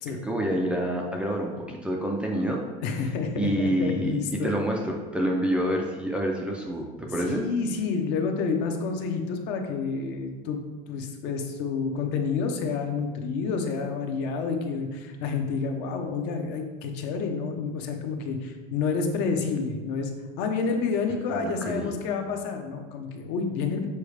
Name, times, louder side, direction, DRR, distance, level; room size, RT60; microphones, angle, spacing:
voice 1, 0.1-2.6 3.4-7.4 21.3-21.9, equal, 5° right, -1 dB, 0.4 m, -27 dB
voice 2, 2.8-4.5 7.2-10.6 10.9-20.1 20.4-23.9, left 5 dB, 60° left, 4 dB, 0.9 m, -29 dB
6.9 x 4.7 x 3.3 m, 1.4 s
cardioid pair, 180°, 20 cm